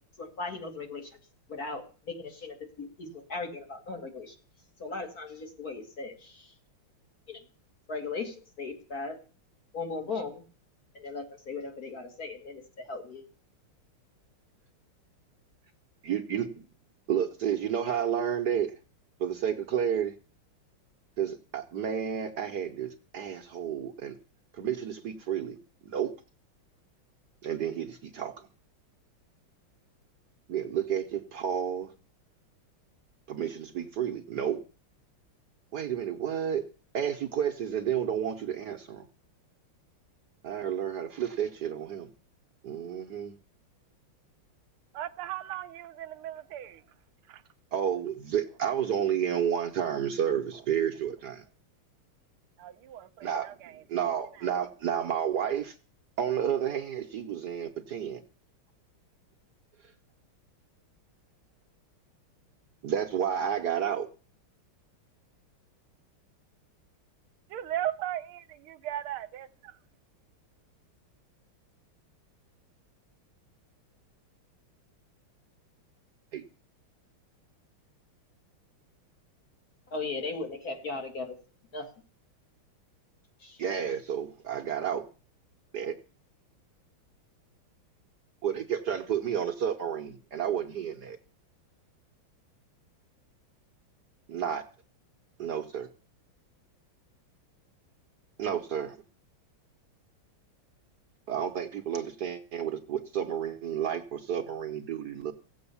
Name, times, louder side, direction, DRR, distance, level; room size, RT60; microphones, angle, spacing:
voice 1, 0.2-1.2 1.5-4.3 4.8-6.5 7.3-7.4 7.9-9.2 9.7-10.4 10.9-13.2 79.9-81.4 81.7-81.9 83.4-83.6, left 3 dB, 45° left, 2.8 m, -37 dB
voice 2, 16.0-16.6 17.1-18.7 19.2-20.1 21.2-24.2 24.5-25.6 25.8-26.1 27.4-28.5 30.5-31.9 33.3-34.6 35.7-36.7 36.9-39.1 40.4-42.1 42.6-43.4 47.7-51.4 53.2-53.5 53.9-55.8 56.2-58.2 62.8-64.1 76.3-76.4 83.6-85.0 85.7-85.9 88.4-91.2 94.3-94.6 95.4-95.9 98.4-99.0 101.3-105.3, right 9 dB, 60° right, 1.3 m, -31 dB
voice 3, 44.9-46.8 47.3-47.4 52.6-53.8 54.3-54.5 67.5-69.8, right 12 dB, 80° right, 1.7 m, -37 dB
16.5 x 7.9 x 7.0 m
omnidirectional pair, 2.3 m